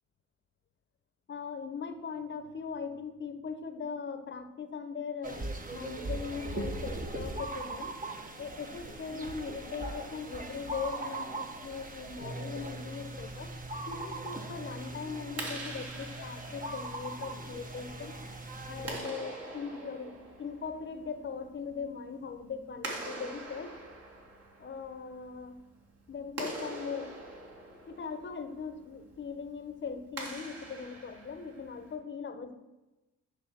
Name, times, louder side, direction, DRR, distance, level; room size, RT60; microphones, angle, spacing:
voice 1, 1.3-8.0 8.4-13.5 13.9-18.2 18.6-23.7 24.6-25.6 26.1-27.1 27.9-32.5, left 5 dB, 40° left, 8 dB, 1.0 m, -40 dB
sound 1, 5.2-19.0, right 2 dB, 25° right, 1.1 m, -40 dB
Clapping, 15.2-32.0, right 2 dB, 55° right, 2.3 m, -45 dB
9.9 x 3.4 x 6.8 m, 1.1 s
cardioid pair, 90°, 30 cm